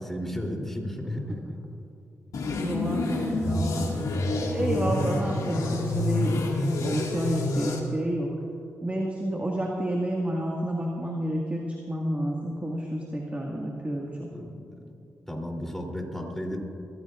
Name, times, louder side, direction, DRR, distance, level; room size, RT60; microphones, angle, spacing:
voice 1, 0.0-1.6 3.2-3.3 14.3-14.9 15.3-16.6, equal, 5° left, 1 dB, 3.3 m, -34 dB
sound 1, 2.3-7.8, left 2 dB, 70° left, 2.0 m, -28 dB
voice 2, 2.6-4.1 4.5-8.3 8.8-14.3, equal, 25° right, -2 dB, 1.9 m, -30 dB
24.0 x 14.5 x 2.5 m, 2.8 s
supercardioid pair, 50°, 6 cm